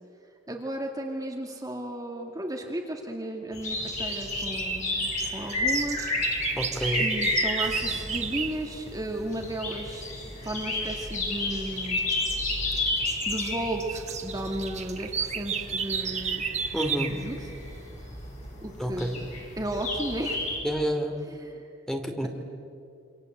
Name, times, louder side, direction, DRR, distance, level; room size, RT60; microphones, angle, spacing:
voice 1, 0.5-6.1 7.0-10.1 10.4-12.0 13.3-16.5 17.1-17.4 18.6-19.1 19.6-20.4 21.3-21.6, right 1 dB, 20° right, 1 dB, 2.3 m, -34 dB
sound 1, 3.5-20.6, left 2 dB, 40° left, 7.5 m, -32 dB
sound 2, 3.9-8.6 10.8-11.2 11.7-17.2, right 7 dB, 35° right, 1.6 m, -33 dB
voice 2, 6.5-7.1 16.7-17.2 18.8-19.2 20.6-21.1 21.9-22.3, equal, 5° left, 3 dB, 2.7 m, -29 dB
28.0 x 26.5 x 8.1 m, 2.5 s
head